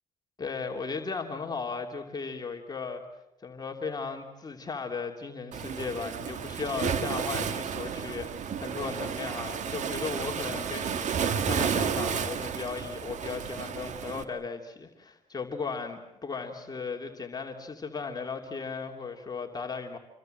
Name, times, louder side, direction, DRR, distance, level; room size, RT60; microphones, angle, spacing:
voice 1, 0.4-3.0 3.4-20.0, left 5 dB, 30° left, 1 dB, 2.8 m, -36 dB
Waves surf, 5.5-14.2, right 7 dB, 65° right, 1.8 m, -32 dB
28.0 x 23.0 x 7.8 m, 0.94 s
cardioid pair, 90°, 13 cm